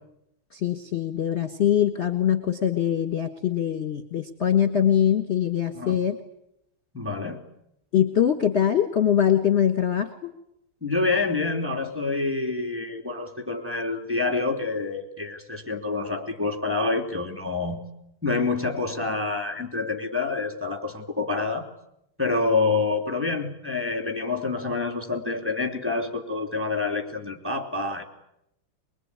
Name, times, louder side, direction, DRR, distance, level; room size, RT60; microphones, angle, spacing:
voice 1, 0.5-6.2 7.9-10.3, left 9 dB, 35° left, 6 dB, 1.5 m, -23 dB
voice 2, 6.9-7.4 10.8-17.8 18.2-21.6 22.2-28.0, left 3 dB, 5° right, 5 dB, 2.9 m, -27 dB
23.5 x 22.5 x 9.7 m, 0.80 s
omnidirectional pair, 2.4 m